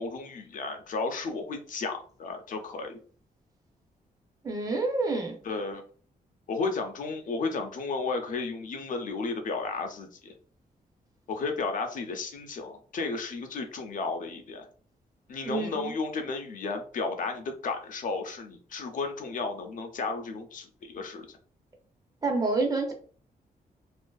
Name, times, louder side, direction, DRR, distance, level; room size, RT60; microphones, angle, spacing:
voice 1, 0.0-3.0 5.4-5.8 6.5-10.3 11.3-14.7 15.3-21.3, left 4 dB, 60° left, 5 dB, 0.4 m, -33 dB
voice 2, 4.4-5.4 15.4-16.0 22.2-22.9, right 3 dB, 25° right, 2 dB, 0.5 m, -28 dB
2.5 x 2.4 x 2.2 m, 0.44 s
wide cardioid pair, 155°, 16 cm